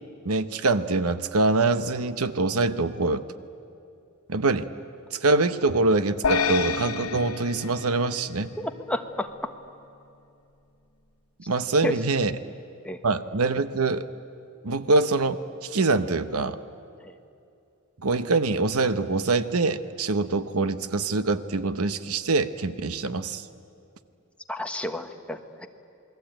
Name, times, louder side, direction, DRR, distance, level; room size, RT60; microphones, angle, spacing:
voice 1, 0.2-3.2 4.3-4.7 5.1-8.5 11.5-12.4 13.0-14.1 14.6-16.6 18.0-23.4, right 3 dB, 80° right, 12 dB, 1.0 m, -24 dB
sound 1, 6.2-8.7, left 5 dB, 85° left, 1.4 m, -29 dB
voice 2, 8.6-9.5 11.8-11.9 12.8-13.0 17.0-17.1 24.5-25.7, left 1 dB, 5° left, 6 dB, 1.2 m, -31 dB
28.0 x 21.0 x 9.0 m, 2.6 s
head